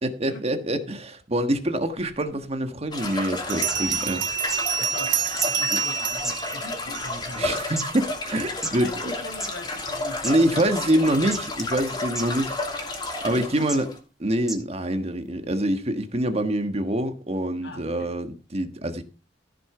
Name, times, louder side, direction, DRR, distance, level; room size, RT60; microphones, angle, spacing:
voice 1, 0.0-4.6 5.7-5.8 7.4-9.1 10.2-13.0 13.2-13.9 14.2-19.0, right 1 dB, 35° right, 1.5 m, -26 dB
Bell, 2.3-2.4 3.5-7.4, right 8 dB, 85° right, 1.2 m, -27 dB
sound 1, 2.9-14.0, left 2 dB, 25° left, 2.8 m, -32 dB
sound 2, 3.7-3.8 4.5-4.6 5.4-5.5 6.2-6.7 7.4-7.9 8.6-8.7 9.3-9.5 10.2-10.3 11.3-11.6 12.1-12.3 13.0-13.1 13.7-13.8 14.5-14.6 15.4-15.5, right 1 dB, ahead, 2.4 m, -31 dB
voice 2, 4.8-5.2 5.4-7.5 8.8-10.7 13.2-14.0 17.6-18.1, left 1 dB, 75° left, 2.8 m, -41 dB
14.5 x 6.7 x 5.0 m
head